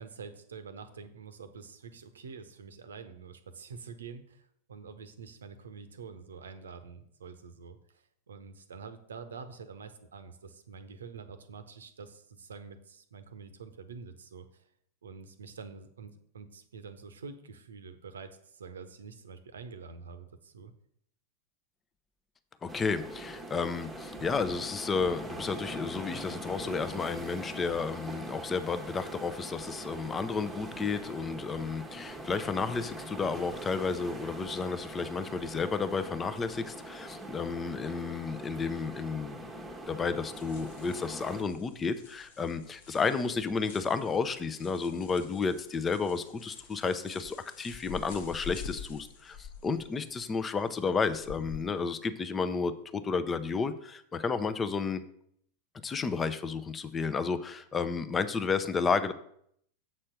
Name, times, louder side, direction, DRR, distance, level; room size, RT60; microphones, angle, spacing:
voice 1, 0.0-14.7 15.0-20.7, right 5 dB, 70° right, 11 dB, 0.8 m, -47 dB
voice 2, 22.6-39.4 39.9-55.0 55.8-59.1, left 5 dB, 20° left, 11 dB, 0.6 m, -32 dB
sound 1, 22.7-41.4, right 1 dB, 10° right, 1.1 m, -42 dB
sound 2, 40.3-51.6, left 7 dB, 55° left, 1.0 m, -48 dB
7.5 x 4.3 x 6.7 m, 0.69 s
figure-of-eight pair, 90°, 0 cm